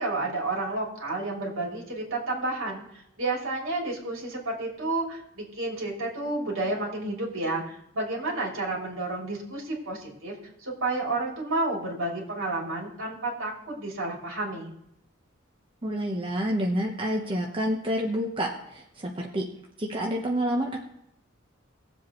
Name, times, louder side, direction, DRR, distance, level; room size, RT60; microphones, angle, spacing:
voice 1, 0.0-2.8 3.2-10.3 10.6-14.7, right 2 dB, 75° right, -2 dB, 3.1 m, -31 dB
voice 2, 15.8-19.5 19.8-20.8, equal, 25° right, 0 dB, 0.9 m, -28 dB
19.0 x 7.5 x 3.1 m, 0.79 s
head